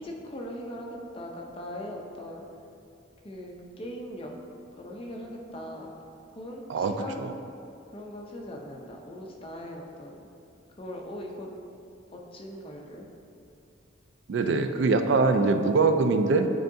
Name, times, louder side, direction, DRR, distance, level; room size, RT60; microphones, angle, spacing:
voice 1, 0.0-2.4 3.2-4.3 4.7-5.9 6.3-7.2 7.9-10.3 10.7-11.5 12.1-13.1, left 1 dB, 30° left, 0 dB, 0.6 m, -40 dB
voice 2, 6.7-7.3 14.3-16.5, right 3 dB, 65° right, 7 dB, 0.3 m, -23 dB
7.7 x 4.6 x 2.6 m, 2.5 s
head